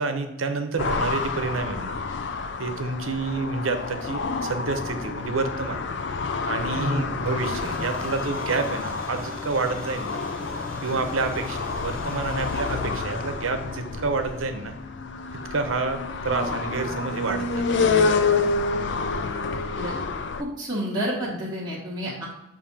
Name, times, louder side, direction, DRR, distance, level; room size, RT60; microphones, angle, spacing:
voice 1, 0.0-2.0 2.6-5.8 6.5-10.2 10.8-14.7 15.5-18.2, right 3 dB, 85° right, 7 dB, 0.7 m, -29 dB
sound 1, 0.8-20.4, left 4 dB, 60° left, 0.4 m, -28 dB
sound 2, 7.3-13.8, left 1 dB, 5° left, 1.1 m, -41 dB
voice 2, 20.4-22.3, equal, 20° right, -8 dB, 1.1 m, -29 dB
7.1 x 2.7 x 5.2 m, 0.94 s
head